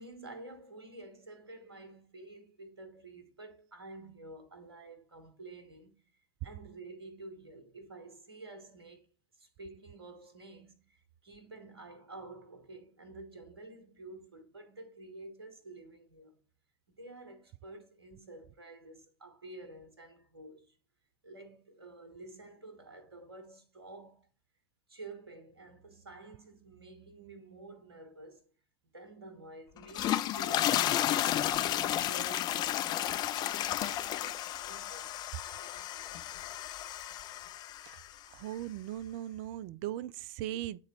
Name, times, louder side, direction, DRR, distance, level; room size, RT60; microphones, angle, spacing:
voice 1, 0.0-6.1 6.4-9.1 9.4-16.4 16.9-20.8 21.2-24.3 24.9-28.5 28.8-36.5, right 2 dB, 75° right, 1.2 m, -50 dB
sound 1, 29.8-38.1, left 12 dB, 35° left, 0.4 m, -32 dB
voice 2, 38.3-40.8, right 13 dB, 45° right, 0.4 m, -38 dB
8.4 x 3.8 x 3.1 m
figure-of-eight pair, 75°, 13 cm